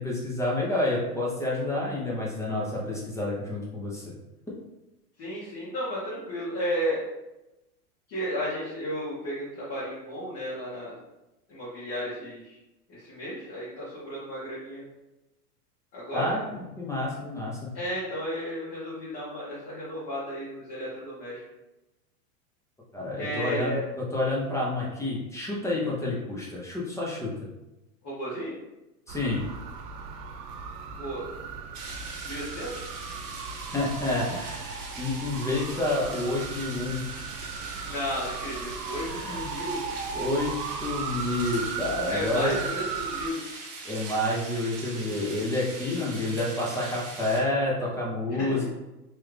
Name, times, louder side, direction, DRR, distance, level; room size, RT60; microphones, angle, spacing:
voice 1, 0.0-4.1 16.1-17.7 22.9-23.8 24.1-27.3 29.1-29.4 33.7-37.1 39.1-39.4 40.1-42.6 43.8-48.6, left 2 dB, 5° left, -5 dB, 0.6 m, -29 dB
voice 2, 5.2-7.0 8.1-11.0 11.5-12.6 12.9-14.8 15.9-16.3 17.7-21.4 23.2-23.8 28.0-28.5 31.0-31.3 32.2-32.9 37.8-39.8 42.1-43.4 48.4-48.6, equal, 35° left, -10 dB, 1.2 m, -33 dB
sound 1, 29.1-43.3, right 5 dB, 85° right, 0.6 m, -37 dB
sound 2, 31.7-47.4, right 3 dB, 40° right, 1.1 m, -41 dB
3.1 x 2.4 x 3.2 m, 0.99 s
hypercardioid pair, 125°, 46 cm